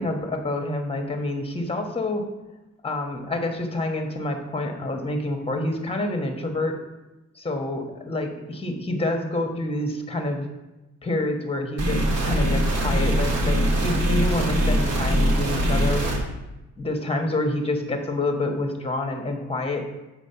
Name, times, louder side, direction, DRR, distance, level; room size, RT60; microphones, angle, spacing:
voice 1, 0.0-2.2 2.8-6.8 7.3-10.5 11.0-16.0 16.8-19.9, left 2 dB, 20° left, 4 dB, 1.3 m, -27 dB
sound 1, 11.8-16.2, equal, 55° right, 1.9 m, -22 dB
6.1 x 4.7 x 5.7 m, 1.0 s
cardioid pair, 90°, 30 cm